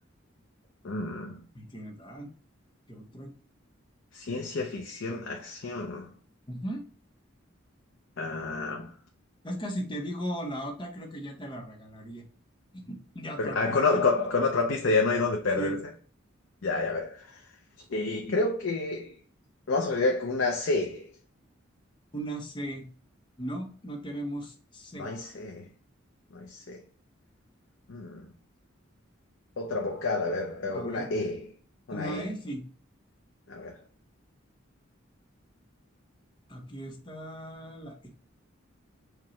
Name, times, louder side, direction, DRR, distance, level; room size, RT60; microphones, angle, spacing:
voice 1, 0.8-1.4 4.1-6.1 8.2-8.9 13.4-15.9 16.6-17.4 17.9-19.2 19.7-21.1 25.0-25.7 26.3-26.8 27.9-28.3 29.6-31.5 31.9-32.3 33.5-33.8, left 3 dB, 70° left, 0.6 m, -29 dB
voice 2, 1.5-2.3 2.9-3.3 6.5-6.8 9.4-12.2 12.7-13.8 15.5-15.8 22.1-22.9 23.4-25.1 30.7-31.1 31.9-32.6 36.5-38.1, right 1 dB, 25° left, 0.7 m, -37 dB
4.8 x 2.2 x 3.0 m
head